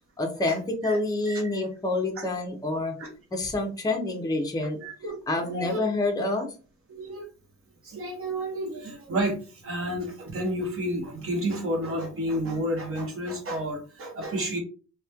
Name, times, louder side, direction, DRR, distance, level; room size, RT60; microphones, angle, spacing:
voice 1, 0.2-2.9 3.3-4.8 5.3-6.5, left 2 dB, 15° left, 2 dB, 0.5 m, -27 dB
voice 2, 1.3-1.6 2.2-2.3 3.0-3.1 4.8-5.2 5.4-5.8 6.9-7.3 7.8-14.6, right 1 dB, 50° right, 2 dB, 0.9 m, -31 dB
2.9 x 2.1 x 2.2 m, 0.35 s
wide cardioid pair, 165°, 29 cm